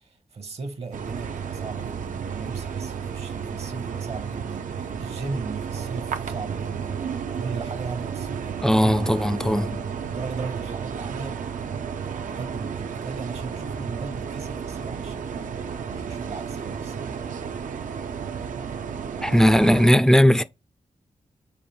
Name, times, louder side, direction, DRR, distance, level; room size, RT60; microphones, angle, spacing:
voice 1, 0.0-9.7 10.1-15.5 15.9-17.1, right 4 dB, 55° right, 0.8 m, -37 dB
sound 1, 0.9-19.9, right 7 dB, 85° right, 0.5 m, -32 dB
voice 2, 8.6-9.8 19.2-20.4, equal, 5° left, 0.3 m, -18 dB
5.4 x 2.4 x 3.2 m
wide cardioid pair, 105°, 13 cm